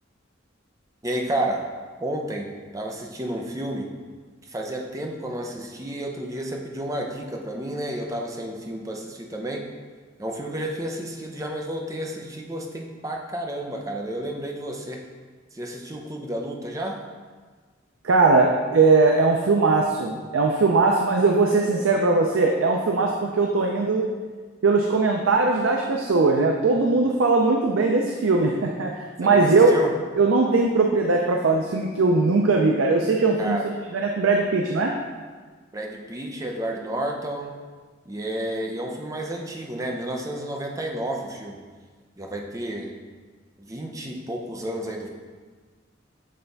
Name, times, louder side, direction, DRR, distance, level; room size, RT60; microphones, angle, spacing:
voice 1, 1.0-1.7 2.0-4.0 4.4-9.7 10.2-15.0 15.5-17.0 29.2-29.9 33.4-33.7 35.7-37.5 38.1-41.6 42.2-42.9 43.6-45.1, right 1 dB, 15° right, 1 dB, 0.6 m, -31 dB
voice 2, 18.0-24.1 24.6-29.7 30.2-33.6 33.9-34.9, right 3 dB, 85° right, 1 dB, 0.5 m, -20 dB
7.6 x 3.3 x 4.0 m, 1.5 s
head